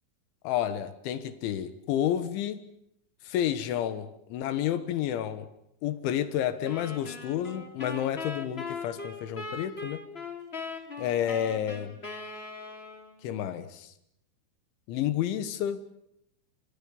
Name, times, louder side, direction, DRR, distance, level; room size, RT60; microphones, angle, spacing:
voice 1, 0.4-2.7 3.3-5.5 5.8-10.0 11.0-12.0 13.2-13.9 14.9-15.8, left 10 dB, 90° left, 11 dB, 3.8 m, -30 dB
sound 1, 6.7-13.2, left 3 dB, 15° left, 2.2 m, -40 dB
30.0 x 25.5 x 5.5 m, 0.77 s
omnidirectional pair, 5.3 m